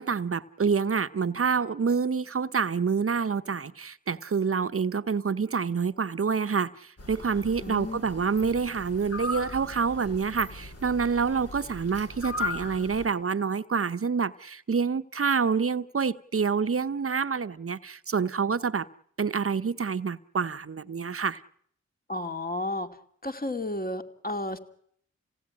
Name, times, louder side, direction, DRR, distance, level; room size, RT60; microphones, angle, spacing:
voice 1, 0.0-18.9 19.2-21.4, right 5 dB, 50° right, 13 dB, 1.0 m, -27 dB
sound 1, 7.0-13.1, left 2 dB, 55° left, 4.2 m, -38 dB
voice 2, 7.6-8.0 22.1-22.9 23.2-24.6, left 1 dB, 30° left, 7 dB, 2.6 m, -32 dB
27.5 x 17.0 x 9.8 m, 0.69 s
cardioid pair, 45°, 29 cm